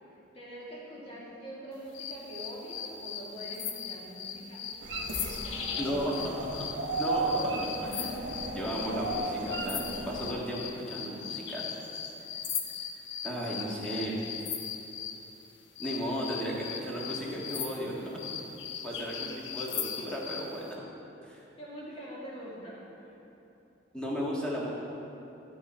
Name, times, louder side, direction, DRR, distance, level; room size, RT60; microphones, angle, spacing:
voice 1, 0.1-4.6 5.0-6.4 6.9-7.0 7.3-7.4 19.2-19.3 21.6-23.2, equal, 30° left, -6 dB, 2.3 m, -44 dB
sound 1, 1.9-15.2 15.7-20.5, left 7 dB, 80° left, 0.8 m, -38 dB
sound 2, 4.8-10.3, right 2 dB, 65° right, 1.2 m, -34 dB
voice 2, 5.8-6.6 7.0-8.1 8.5-11.6 13.2-14.2 15.8-18.2 18.8-20.8 21.2-21.4 23.9-24.7, equal, 5° left, -5 dB, 1.6 m, -35 dB
13.0 x 7.0 x 4.3 m, 3.0 s
head